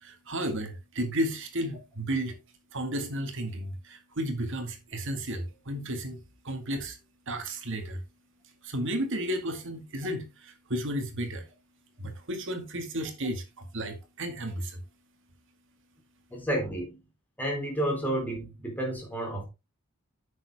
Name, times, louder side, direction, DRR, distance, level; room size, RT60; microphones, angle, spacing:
voice 1, 0.0-2.4 2.7-7.0 7.3-8.0 8.6-11.4 12.0-14.8, right 1 dB, 60° right, 2.0 m, -33 dB
voice 2, 16.3-17.0 17.4-19.4, right 1 dB, 10° left, 3.9 m, -31 dB
9.4 x 6.8 x 3.5 m
head